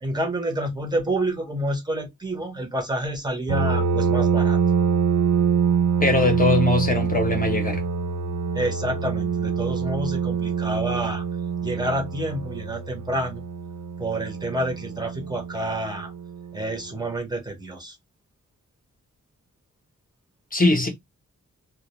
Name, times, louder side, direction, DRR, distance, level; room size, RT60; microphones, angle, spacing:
voice 1, 0.0-4.6 8.5-11.2 11.6-13.4 14.0-16.1 16.5-18.0, right 1 dB, 15° right, 0.7 m, -28 dB
sound 1, 3.5-16.8, right 6 dB, 70° right, 0.5 m, -25 dB
voice 2, 6.0-7.8 20.5-20.9, left 3 dB, 30° left, 0.7 m, -21 dB
2.2 x 2.1 x 2.8 m
wide cardioid pair, 120°, 31 cm